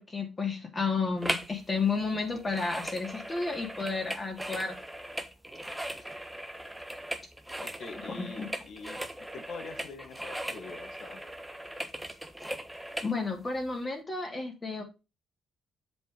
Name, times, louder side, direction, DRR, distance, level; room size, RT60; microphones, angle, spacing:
voice 1, 0.0-4.7 8.1-8.5 13.0-14.8, left 4 dB, 30° left, 2 dB, 2.9 m, -32 dB
sound 1, 1.2-1.6 1.8-13.1 13.7-13.8, right 1 dB, 5° right, 1.3 m, -38 dB
voice 2, 7.6-9.0 9.3-11.2, left 4 dB, 60° left, 7 dB, 1.8 m, -44 dB
7.7 x 5.3 x 5.1 m, 0.27 s
cardioid pair, 90°, 0 cm